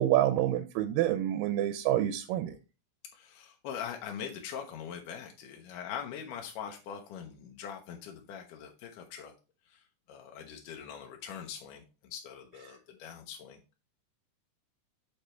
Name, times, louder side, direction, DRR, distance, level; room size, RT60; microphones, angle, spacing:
voice 1, 0.0-2.5, right 13 dB, 85° right, 11 dB, 2.2 m, -27 dB
voice 2, 3.1-9.3 9.7-9.8 10.1-11.8 12.1-13.8, left 8 dB, 75° left, 3 dB, 2.2 m, -42 dB
6.6 x 5.0 x 4.3 m, 0.32 s
omnidirectional pair, 4.1 m